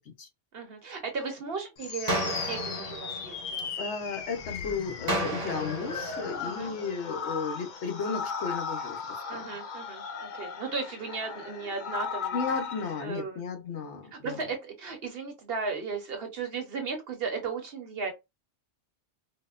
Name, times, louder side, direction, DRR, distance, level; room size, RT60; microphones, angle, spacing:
voice 1, 0.5-3.7 6.4-6.7 9.3-12.5 13.0-13.4 14.2-18.1, right 4 dB, 55° right, 1.0 m, -36 dB
sound 1, 1.8-13.0, left 6 dB, 55° left, 0.5 m, -37 dB
sound 2, 2.1-4.1 5.1-7.1, right 1 dB, 35° right, 0.8 m, -34 dB
voice 2, 3.8-9.0 9.3-9.4 12.3-14.5, left 5 dB, 70° left, 1.1 m, -34 dB
4.2 x 2.1 x 2.4 m
omnidirectional pair, 1.2 m